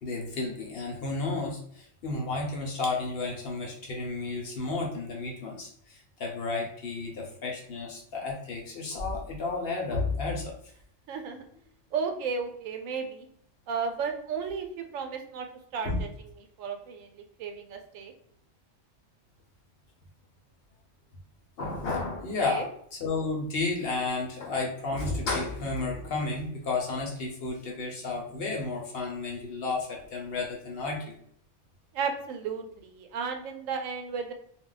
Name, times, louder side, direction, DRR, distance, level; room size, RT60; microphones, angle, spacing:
voice 1, 0.0-10.5 15.8-16.0 21.6-31.1, left 3 dB, 55° left, 0 dB, 0.8 m, -32 dB
voice 2, 11.1-11.4 11.9-13.3 13.7-15.5 15.7-16.1 16.6-18.1 22.4-22.7 31.9-34.3, right 5 dB, 90° right, 5 dB, 1.0 m, -33 dB
2.3 x 2.1 x 3.7 m, 0.65 s
omnidirectional pair, 1.3 m